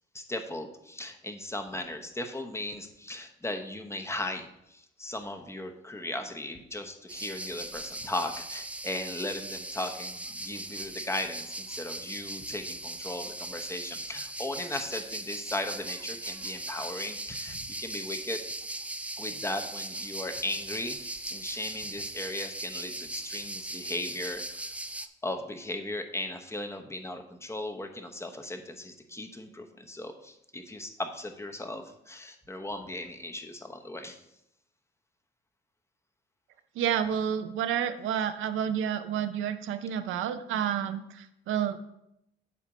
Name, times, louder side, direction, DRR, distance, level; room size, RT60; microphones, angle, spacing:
voice 1, 0.1-18.4 19.2-24.4 25.2-34.2, left 1 dB, 15° left, 5 dB, 0.8 m, -37 dB
sound 1, 7.1-25.1, right 2 dB, 5° right, 0.4 m, -39 dB
voice 2, 36.8-41.8, right 9 dB, 80° right, 10 dB, 0.6 m, -30 dB
8.4 x 2.8 x 6.1 m, 0.81 s
cardioid pair, 90°, 20 cm